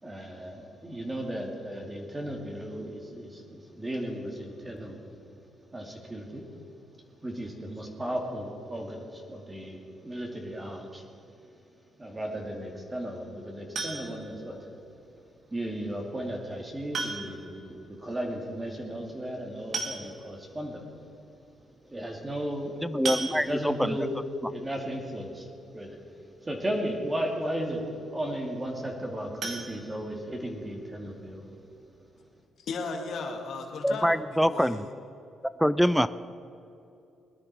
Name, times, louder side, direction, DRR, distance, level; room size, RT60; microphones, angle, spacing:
voice 1, 0.0-5.1 5.7-6.6 6.9-11.0 12.0-14.7 15.5-21.0 21.8-24.1 24.5-26.0 26.4-31.5, right 1 dB, 20° right, 0 dB, 2.3 m, -35 dB
sound 1, 13.7-14.4 15.9-16.0 16.9-17.5 17.8-17.9 18.2-18.3 19.3-19.4 19.7-20.4 21.0-21.1 21.4-21.6 23.0-23.9 29.4-30.6 30.9-31.0 31.5-31.6 31.9-32.0, right 3 dB, 50° right, 2.0 m, -35 dB
voice 2, 22.8-24.0 33.8-34.8 35.6-36.1, equal, ahead, 13 dB, 0.4 m, -24 dB
voice 3, 32.6-34.2 34.5-34.9, left 4 dB, 65° left, 2 dB, 2.1 m, -35 dB
20.5 x 10.5 x 4.7 m, 2.7 s
cardioid pair, 90°, 0 cm